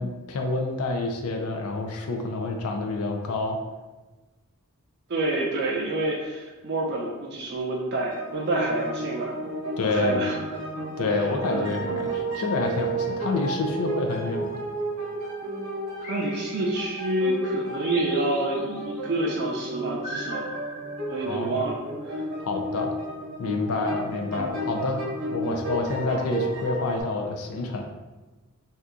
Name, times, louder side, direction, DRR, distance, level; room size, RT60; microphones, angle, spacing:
voice 1, 0.0-3.6 9.8-10.2 11.0-14.6 21.3-21.6 22.4-22.9 23.4-25.1 25.3-27.8, left 3 dB, 80° left, 3 dB, 0.4 m, -28 dB
voice 2, 5.1-9.4 9.8-10.4 11.1-11.7 16.0-20.6 21.1-21.8 22.0-22.2, right 2 dB, 50° right, -2 dB, 0.4 m, -28 dB
sound 1, 8.1-27.0, right 1 dB, 90° right, 0.8 m, -32 dB
sound 2, 16.0-17.2 17.8-19.0 20.0-21.5, equal, 30° left, 1.1 m, -40 dB
2.8 x 2.3 x 3.7 m, 1.2 s
head